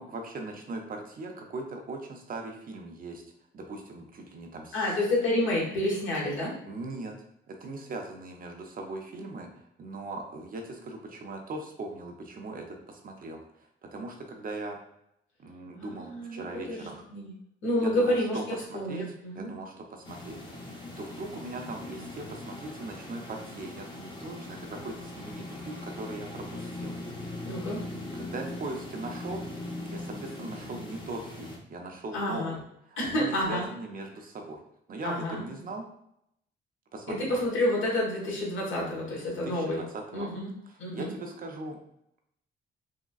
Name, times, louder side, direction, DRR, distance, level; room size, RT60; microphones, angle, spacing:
voice 1, 0.0-3.2 3.5-4.9 6.7-9.5 9.8-14.8 15.4-17.0 17.8-18.4 18.7-19.1 19.3-27.0 28.1-29.4 29.9-32.6 32.9-34.6 34.9-35.8 36.9-37.4 39.2-41.8, right 2 dB, 45° right, 3 dB, 0.6 m, -40 dB
voice 2, 4.7-6.5 15.8-17.3 17.6-19.5 27.5-27.8 32.1-32.5 33.0-33.7 35.0-35.4 37.1-39.8 40.1-40.5 40.8-41.1, left 1 dB, 75° left, -4 dB, 1.4 m, -29 dB
sound 1, 20.0-31.6, left 2 dB, 25° left, 0.7 m, -40 dB
3.6 x 2.1 x 2.3 m, 0.75 s
cardioid pair, 90°, 20 cm